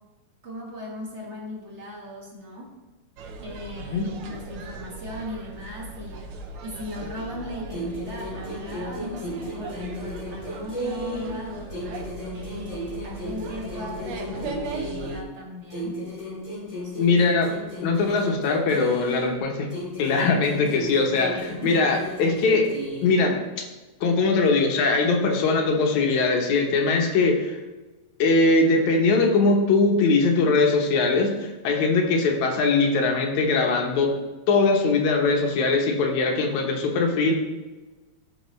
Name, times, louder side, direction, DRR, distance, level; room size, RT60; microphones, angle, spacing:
voice 1, 0.4-2.7 3.4-6.2 6.6-11.7 12.3-16.0 16.7-17.1 21.6-21.8, left 1 dB, 30° right, -3 dB, 1.3 m, -38 dB
sound 1, 3.2-15.2, right 3 dB, 75° right, 1.3 m, -38 dB
sound 2, 7.7-11.4 11.7-15.3 15.7-19.4 19.7-23.3, equal, 10° left, 2.1 m, -34 dB
voice 2, 17.0-17.5 17.8-19.7 20.0-22.7 23.0-23.4 24.0-27.6 28.2-34.1 34.5-37.4, left 3 dB, 75° left, 2 dB, 2.4 m, -21 dB
13.5 x 4.9 x 3.1 m, 1.2 s
omnidirectional pair, 3.4 m